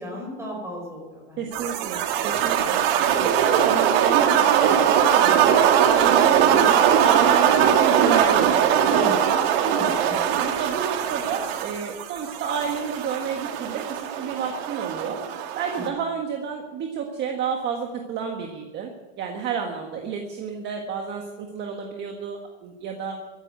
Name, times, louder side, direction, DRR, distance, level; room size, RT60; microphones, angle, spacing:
voice 1, 0.0-1.5 2.9-3.3 6.0-6.1 8.9-9.1 9.7-10.2 15.8-15.9, equal, 10° right, -1 dB, 5.5 m, -35 dB
voice 2, 1.4-2.8 3.2-5.6 5.9-9.2 10.4-15.2 15.5-18.9 19.2-23.1, right 6 dB, 30° right, 3 dB, 1.6 m, -30 dB
sound 1, 1.5-15.9, right 9 dB, 60° right, 1.8 m, -21 dB
15.0 x 10.5 x 8.0 m, 1.3 s
supercardioid pair, 160°, 34 cm